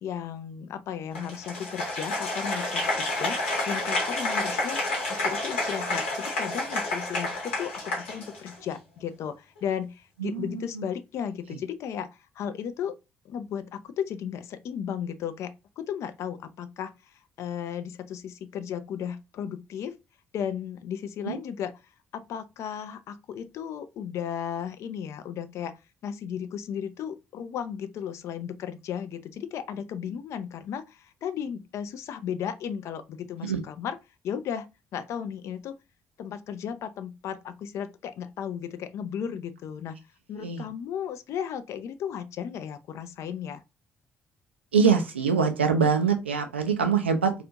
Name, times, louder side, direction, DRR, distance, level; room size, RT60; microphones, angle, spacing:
voice 1, 0.0-4.8 5.1-12.1 12.4-13.0 13.3-20.0 20.3-21.7 22.1-25.7 26.0-34.0 34.2-35.8 36.2-40.0 40.3-43.6, left 8 dB, 55° left, 0.3 m, -35 dB
Applause, 1.1-8.7, left 2 dB, 80° left, 0.9 m, -29 dB
voice 2, 10.2-10.8 21.2-21.3 33.4-33.6 40.4-40.7 44.7-47.4, right 6 dB, 85° right, 0.4 m, -24 dB
2.5 x 2.4 x 2.7 m
figure-of-eight pair, 45°, 6 cm